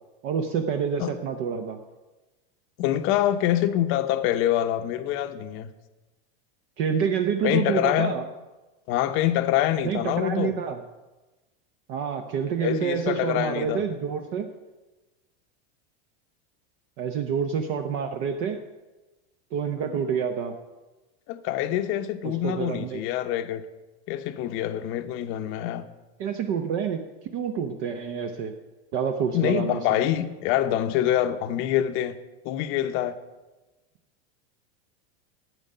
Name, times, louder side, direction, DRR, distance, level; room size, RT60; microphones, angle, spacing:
voice 1, 0.2-1.8 6.8-8.2 9.8-10.8 11.9-14.5 17.0-18.6 19.5-20.6 22.2-23.0 26.2-27.0 27.3-28.5 28.9-30.0, right 7 dB, 45° right, 0.8 m, -28 dB
voice 2, 2.8-5.7 7.4-8.1 8.9-10.5 12.6-13.8 21.3-23.6 24.1-25.8 29.3-32.2 32.4-33.2, left 12 dB, 40° left, 0.8 m, -25 dB
12.5 x 8.9 x 5.5 m
supercardioid pair, 150°, 32 cm